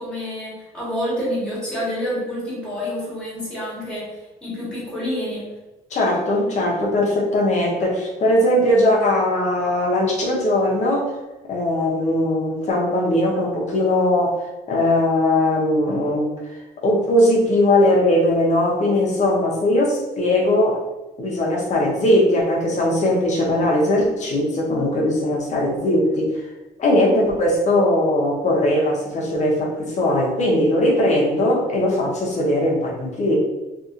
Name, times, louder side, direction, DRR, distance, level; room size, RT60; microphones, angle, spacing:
voice 1, 0.0-5.5, equal, 5° left, -9 dB, 1.4 m, -28 dB
voice 2, 5.9-11.1 11.5-16.3 16.8-20.8 21.2-26.3 26.8-33.4, left 1 dB, 45° left, -2 dB, 0.9 m, -19 dB
2.7 x 2.7 x 2.5 m, 1.1 s
cardioid pair, 110°, 17 cm